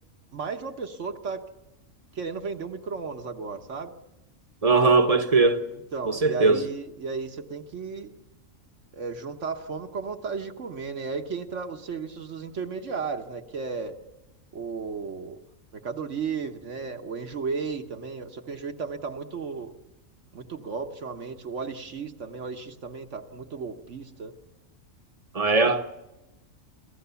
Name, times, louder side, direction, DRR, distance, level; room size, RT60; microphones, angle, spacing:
voice 1, 0.3-1.5 2.1-3.9 5.9-8.1 8.9-14.0 14.5-15.4 15.7-19.7 20.3-24.3, right 5 dB, 65° right, 1.5 m, -34 dB
voice 2, 4.6-5.7 6.1-6.6 25.3-26.0, right 3 dB, 30° right, 1.1 m, -20 dB
28.5 x 15.0 x 7.0 m
omnidirectional pair, 1.4 m